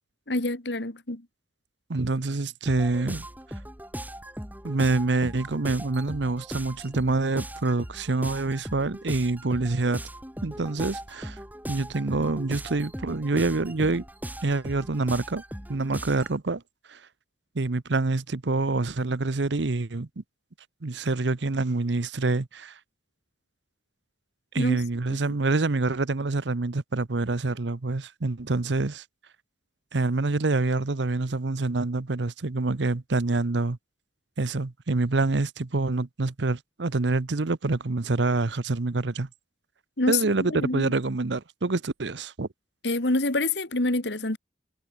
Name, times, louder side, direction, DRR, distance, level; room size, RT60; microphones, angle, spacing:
voice 1, 0.3-1.3 24.6-24.8 25.1-25.2 40.0-40.9 42.8-44.4, left 2 dB, 75° left, 2.4 m, -27 dB
voice 2, 1.9-3.3 4.6-10.0 10.4-11.4 11.7-14.0 14.4-15.4 15.7-16.6 16.9-17.0 17.5-20.2 20.8-22.7 24.5-29.0 29.9-33.8 34.4-39.3 40.1-42.5, right 3 dB, 80° right, 0.9 m, -26 dB
sound 1, 2.7-16.4, right 1 dB, 10° right, 6.2 m, -39 dB
head